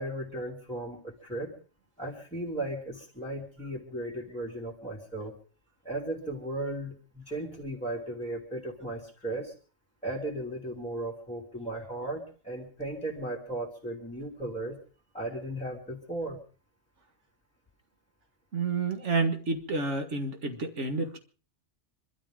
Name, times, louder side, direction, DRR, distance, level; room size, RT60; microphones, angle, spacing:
voice 1, 0.0-1.5 2.0-5.3 5.8-9.5 10.0-14.8 15.1-16.4, right 1 dB, 5° left, -4 dB, 2.8 m, -36 dB
voice 2, 18.5-21.2, right 3 dB, 70° right, 6 dB, 2.0 m, -29 dB
26.0 x 13.0 x 3.7 m, 0.38 s
omnidirectional pair, 1.3 m